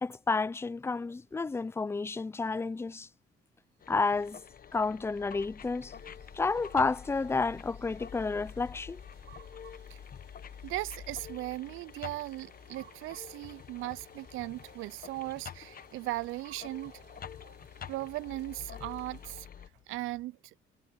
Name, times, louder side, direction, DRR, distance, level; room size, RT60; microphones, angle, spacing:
voice 1, 0.0-3.1 3.9-4.4 4.7-5.9 6.3-9.0, left 4 dB, 10° left, 0.4 m, -31 dB
sound 1, 3.8-19.7, left 8 dB, 45° left, 1.2 m, -48 dB
sound 2, 5.1-20.3, left 12 dB, 85° left, 7.5 m, -63 dB
sound 3, 5.9-19.3, right 10 dB, 65° right, 5.7 m, -61 dB
voice 2, 10.6-16.9 17.9-19.5 19.9-20.4, right 18 dB, 90° right, 0.4 m, -38 dB
cardioid pair, 90°, 20 cm